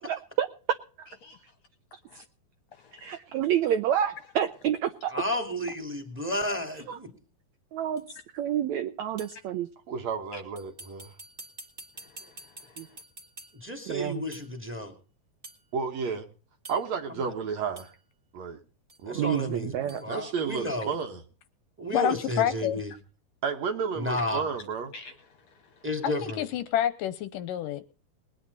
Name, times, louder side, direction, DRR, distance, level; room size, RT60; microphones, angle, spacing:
voice 1, 0.1-0.5 1.0-1.1 2.1-2.2 2.9-5.1 6.9-7.0 7.7-8.0 8.3-9.7 12.8-12.9 13.9-14.2 19.1-20.0, right 10 dB, 80° right, 10 dB, 1.6 m, -29 dB
voice 2, 2.7-3.2 10.3-10.4 11.9-13.0 24.9-25.9, left 3 dB, 60° left, 7 dB, 2.0 m, -50 dB
voice 3, 5.1-7.1 13.6-14.9 19.1-20.9 21.8-22.9 24.0-24.4 25.8-26.5, left 1 dB, 5° right, 4 dB, 2.0 m, -32 dB
sound 1, 8.0-8.1 9.2-9.5 10.6-13.7 14.3-14.6 15.4-15.7 16.6-17.1 17.8-18.0 18.9-19.0 19.9-20.1, right 2 dB, 20° right, 1.8 m, -48 dB
voice 4, 9.9-11.1 15.7-16.3 16.7-17.9 18.3-18.6 19.0-19.4 20.1-21.2 23.4-24.9, right 6 dB, 60° right, 5 dB, 2.1 m, -32 dB
voice 5, 21.9-22.8 26.0-27.8, left 10 dB, 75° left, 12 dB, 2.3 m, -28 dB
21.0 x 10.0 x 4.1 m, 0.38 s
omnidirectional pair, 4.2 m